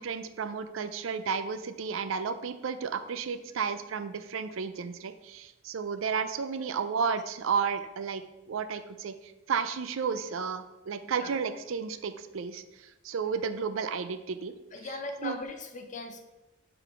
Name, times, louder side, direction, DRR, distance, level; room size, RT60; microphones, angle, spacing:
voice 1, 0.0-9.1 9.5-12.6 13.0-14.5 15.2-15.4, right 6 dB, 80° right, 11 dB, 0.4 m, -32 dB
voice 2, 14.7-16.2, left 2 dB, 40° left, 5 dB, 0.7 m, -39 dB
6.9 x 3.8 x 4.6 m, 1.0 s
head